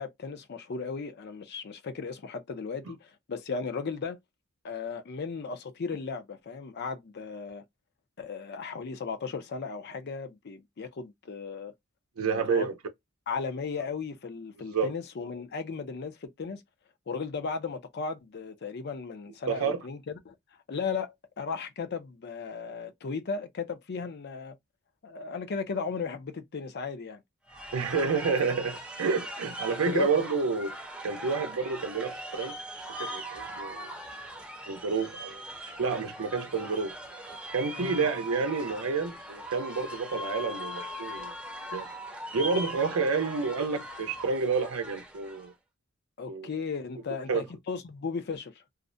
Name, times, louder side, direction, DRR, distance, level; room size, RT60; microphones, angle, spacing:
voice 1, 0.0-4.2 4.6-7.6 8.2-11.7 12.2-12.7 13.3-16.6 17.1-20.3 20.7-24.6 25.0-27.2 29.9-30.2 37.8-38.0 46.2-48.6, left 5 dB, 50° left, 0.5 m, -36 dB
voice 2, 12.2-12.7 14.7-14.9 19.5-19.8 27.7-30.7 31.0-32.6 33.0-33.9 34.7-36.9 37.5-41.3 41.7-41.9 42.3-45.5 46.3-46.5 47.3-47.4, right 5 dB, 90° right, 0.6 m, -29 dB
sound 1, 27.5-45.5, right 1 dB, 5° right, 0.6 m, -40 dB
2.4 x 2.1 x 2.5 m
head